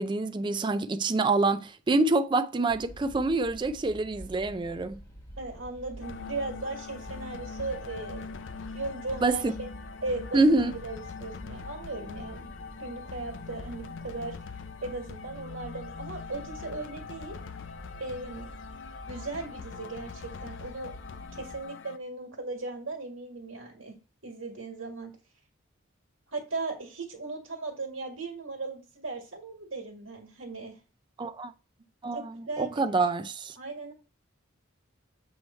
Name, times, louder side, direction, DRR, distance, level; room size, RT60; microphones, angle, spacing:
voice 1, 0.0-5.0 9.2-9.5 10.3-10.7 31.2-31.5 32.0-33.5, right 3 dB, 25° right, 0.4 m, -26 dB
sound 1, 2.7-21.6, right 1 dB, 15° left, 1.3 m, -48 dB
voice 2, 5.4-8.4 8.7-9.7 10.0-10.4 10.8-12.5 12.8-14.3 14.8-17.4 18.0-18.5 19.1-21.0 21.3-23.9 24.2-25.1 26.3-30.8 32.5-33.0 33.6-33.9, right 3 dB, 85° right, 1.8 m, -37 dB
sound 2, 6.0-22.0, left 5 dB, 65° left, 0.4 m, -42 dB
7.8 x 3.1 x 4.3 m
head